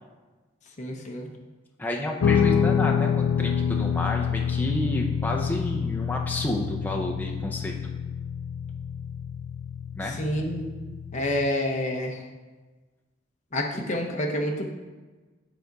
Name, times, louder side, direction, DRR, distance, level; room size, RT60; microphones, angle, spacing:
voice 1, 0.8-1.3 10.2-10.7 11.1-12.2 13.5-14.7, left 1 dB, 35° left, 1 dB, 0.8 m, -28 dB
voice 2, 1.8-7.8 10.0-10.2 13.7-13.8, left 1 dB, 10° left, 0 dB, 0.5 m, -30 dB
Guitar, 2.2-11.5, left 7 dB, 85° left, 0.4 m, -27 dB
7.7 x 3.9 x 4.6 m, 1.3 s
head